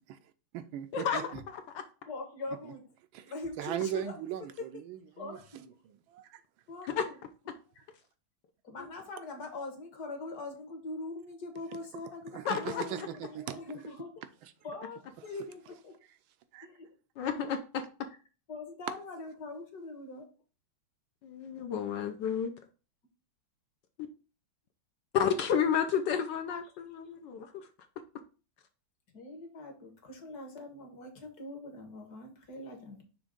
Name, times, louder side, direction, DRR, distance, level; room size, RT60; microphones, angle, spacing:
voice 1, 0.5-1.4 3.1-5.4 6.1-6.4 12.3-13.6 16.5-16.7, right 10 dB, 80° right, 1.3 m, -38 dB
voice 2, 2.1-2.9 3.3-4.1 4.6-4.7 5.2-5.7 6.7-6.9 7.8-7.9 8.6-14.2 14.6-16.0 16.6-16.9 18.5-20.3 29.1-33.0, left 2 dB, 55° left, 1.6 m, -42 dB
voice 3, 12.4-12.8 17.2-17.8 21.2-22.5 25.1-27.7, left 7 dB, 70° left, 1.2 m, -31 dB
6.2 x 3.1 x 5.1 m
omnidirectional pair, 2.3 m